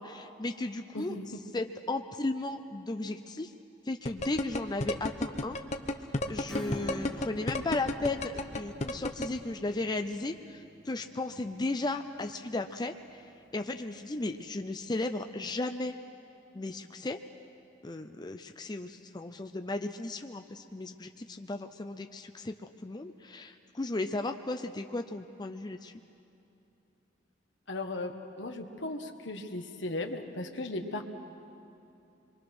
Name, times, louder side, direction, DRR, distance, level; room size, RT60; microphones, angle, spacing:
voice 1, 0.0-1.1 1.5-3.5 3.9-5.6 6.3-13.2 13.5-15.9 16.5-17.2 17.8-25.9, left 2 dB, 25° left, 6 dB, 0.5 m, -35 dB
voice 2, 0.9-1.4 27.7-31.0, left 2 dB, 75° left, 5 dB, 1.5 m, -37 dB
sound 1, 4.1-9.3, left 2 dB, 40° left, 0.9 m, -31 dB
Acoustic guitar / Strum, 6.5-12.7 13.1-13.2, equal, ahead, 2.3 m, -47 dB
26.5 x 23.5 x 6.1 m, 2.8 s
head